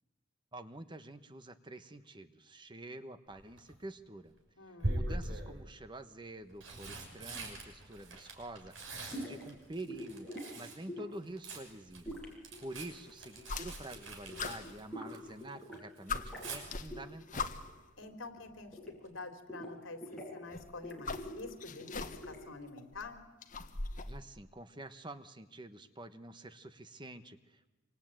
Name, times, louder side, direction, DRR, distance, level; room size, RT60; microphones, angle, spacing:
voice 1, 0.5-4.4 4.7-8.7 9.1-10.3 10.6-12.2 12.6-17.5 24.1-27.7, right 1 dB, 25° right, 10 dB, 1.2 m, -48 dB
Tearing, 3.3-3.8 4.8-5.5 6.3-10.8 11.1-15.4 15.7-16.6 18.5-18.7 19.0-19.1, right 1 dB, 70° right, 6.7 m, -42 dB
voice 2, 4.6-5.1 18.0-23.2, left 3 dB, 70° left, 7 dB, 3.4 m, -47 dB
sound 1, 9.1-9.4 9.9-10.5 10.9-11.3 12.0-13.5 13.8-14.0 14.3-15.8 16.1-16.6 16.9-17.0 17.3-17.8 18.0-19.2 19.5-20.4 20.8-22.6, equal, ahead, 6.9 m, -45 dB
sound 2, 13.4-14.0 14.4-15.4 15.8-15.9 16.1-17.9 18.9-19.0 20.4-22.4 22.8-24.2, left 4 dB, 40° left, 1.4 m, -41 dB
26.0 x 25.0 x 9.1 m, 1.1 s
head